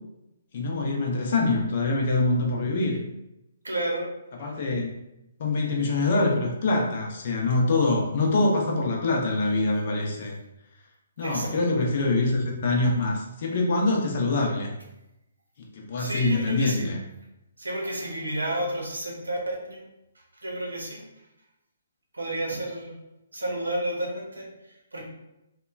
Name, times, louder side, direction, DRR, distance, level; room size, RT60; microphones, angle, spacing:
voice 1, 0.5-3.0 4.4-4.9 5.4-10.3 11.2-14.7 15.6-17.0, left 2 dB, 50° left, 0 dB, 0.6 m, -24 dB
voice 2, 3.6-4.1 4.4-4.5 11.2-11.6 16.0-16.9 17.6-19.8 20.4-21.0 22.1-23.0 23.3-24.5 24.9-25.0, right 1 dB, 80° right, -1 dB, 0.7 m, -31 dB
2.9 x 2.2 x 2.3 m, 0.91 s
figure-of-eight pair, 130°, 0 cm